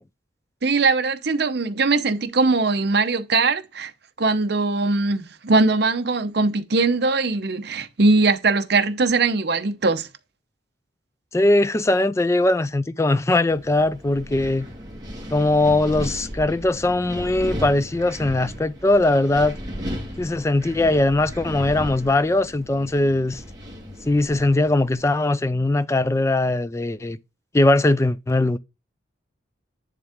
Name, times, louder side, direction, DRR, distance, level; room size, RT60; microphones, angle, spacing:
voice 1, 0.6-3.9 4.2-10.1, right 3 dB, 55° right, 0.8 m, -21 dB
voice 2, 11.3-14.7 15.3-19.6 20.2-23.4 24.1-27.2 27.5-28.6, left 2 dB, 15° left, 0.3 m, -20 dB
Wind, 13.5-25.0, equal, 20° right, 1.8 m, -35 dB
10.0 x 3.6 x 3.5 m
head